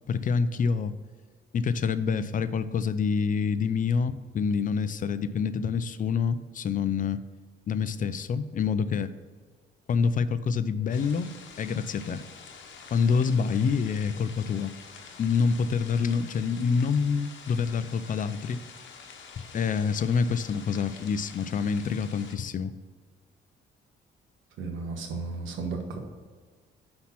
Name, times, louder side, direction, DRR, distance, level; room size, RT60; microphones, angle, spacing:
voice 1, 0.1-0.9 1.5-7.2 7.7-9.1 9.9-12.2 12.9-14.7 15.2-18.6 19.5-22.7, left 5 dB, 45° left, 13 dB, 0.4 m, -27 dB
sound 1, 10.9-22.3, left 5 dB, 70° left, 1.0 m, -47 dB
voice 2, 24.6-26.0, right 4 dB, 80° right, 3 dB, 1.2 m, -34 dB
5.8 x 4.3 x 5.8 m, 1.5 s
cardioid pair, 90°, 20 cm